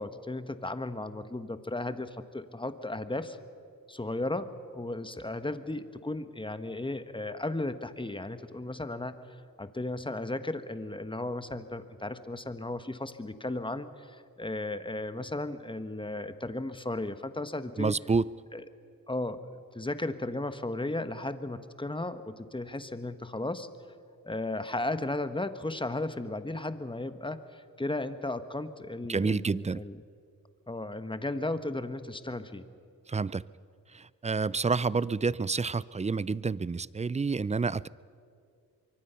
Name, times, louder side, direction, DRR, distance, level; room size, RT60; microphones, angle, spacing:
voice 1, 0.0-3.4 3.9-9.2 9.6-17.9 18.5-18.6 19.1-19.4 19.7-23.7 24.2-30.0 30.7-32.7, left 2 dB, 15° left, 10 dB, 1.3 m, -35 dB
voice 2, 17.8-18.3 29.1-29.8 33.1-33.4 33.9-37.9, right 4 dB, 20° right, 20 dB, 0.4 m, -29 dB
24.0 x 24.0 x 5.7 m, 2.4 s
cardioid pair, 65°, 35 cm